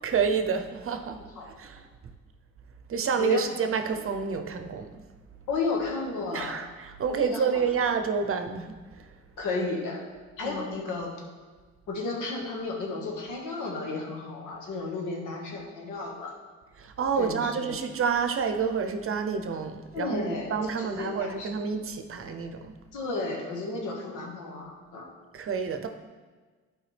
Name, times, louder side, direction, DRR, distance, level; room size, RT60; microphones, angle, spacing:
voice 1, 0.0-1.8 2.9-5.0 6.3-8.7 10.4-10.8 16.8-22.7 25.3-25.9, right 6 dB, 45° right, 7 dB, 0.7 m, -29 dB
voice 2, 3.2-3.5 5.5-6.6 7.0-7.4 9.4-10.1 10.4-11.2 11.9-16.3 17.2-17.8 19.9-21.5 22.9-25.1, left 3 dB, 85° left, -1 dB, 1.7 m, -33 dB
11.0 x 4.7 x 3.4 m, 1.4 s
cardioid pair, 90°, 30 cm